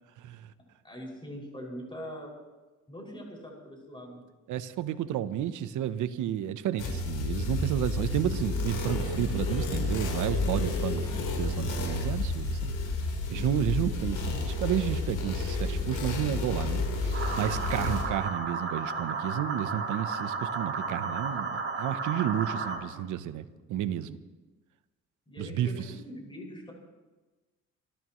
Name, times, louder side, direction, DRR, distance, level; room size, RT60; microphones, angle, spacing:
voice 1, 0.8-2.3 2.9-4.2 17.7-17.9 25.3-26.7, equal, 15° left, -1 dB, 6.0 m, -42 dB
voice 2, 4.5-12.7 13.3-24.2 25.4-25.7, right 10 dB, 80° right, 12 dB, 0.9 m, -31 dB
sound 1, 6.8-18.0, left 2 dB, 80° left, 4.1 m, -31 dB
sound 2, 17.1-22.8, right 4 dB, 50° right, 3.6 m, -33 dB
27.0 x 13.5 x 3.1 m, 1.2 s
cardioid pair, 90°, 30 cm